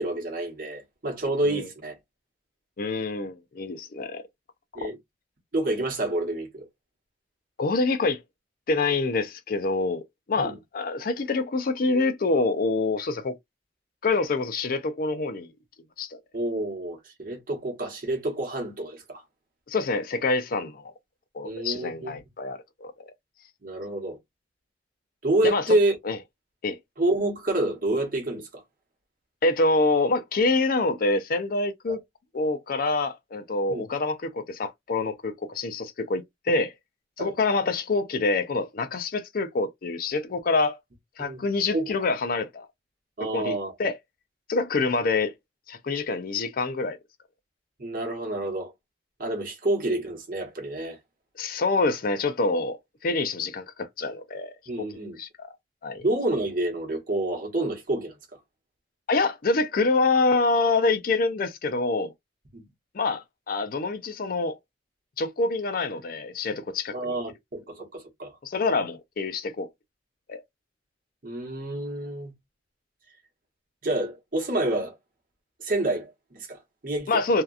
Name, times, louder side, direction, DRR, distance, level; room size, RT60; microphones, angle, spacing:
voice 1, 0.0-1.9 4.7-5.0 5.5-6.7 10.4-10.6 16.3-19.2 21.4-22.2 23.6-24.2 25.2-26.0 27.0-28.6 31.9-32.0 33.7-33.8 37.2-37.3 41.2-41.4 41.7-41.9 43.2-43.7 47.8-48.7 49.2-51.0 54.7-55.2 56.0-58.4 62.5-62.6 66.9-68.4 71.2-72.3 73.8-74.9 75.6-77.2, right 1 dB, 50° right, 1.1 m, -28 dB
voice 2, 2.8-4.2 4.8-4.9 7.6-8.2 8.7-10.0 10.3-13.3 14.0-15.5 16.0-16.2 19.7-20.9 21.3-22.9 25.4-25.8 26.0-26.2 26.6-26.8 29.4-32.0 32.3-36.7 37.2-40.8 41.2-42.7 43.2-44.0 44.5-45.3 45.7-47.0 51.4-54.9 55.2-55.5 55.8-56.0 59.1-62.1 62.9-64.6 65.2-67.1 68.4-69.7 70.3-70.4 77.1-77.4, left 3 dB, 55° left, 0.5 m, -26 dB
2.8 x 2.4 x 2.4 m
head